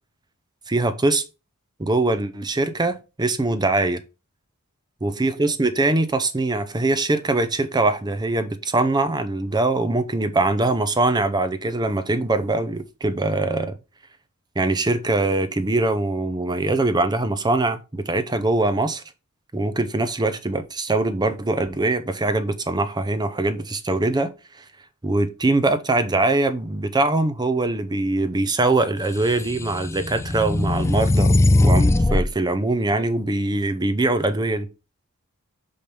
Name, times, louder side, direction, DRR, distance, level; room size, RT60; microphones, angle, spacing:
voice 1, 0.7-1.2 1.8-4.0 5.0-13.8 14.6-19.0 19.5-24.6 25.0-34.7, right 2 dB, 20° right, 0.7 m, -22 dB
sound 1, 29.3-32.3, left 2 dB, 10° left, 0.3 m, -19 dB
5.9 x 5.1 x 5.3 m
head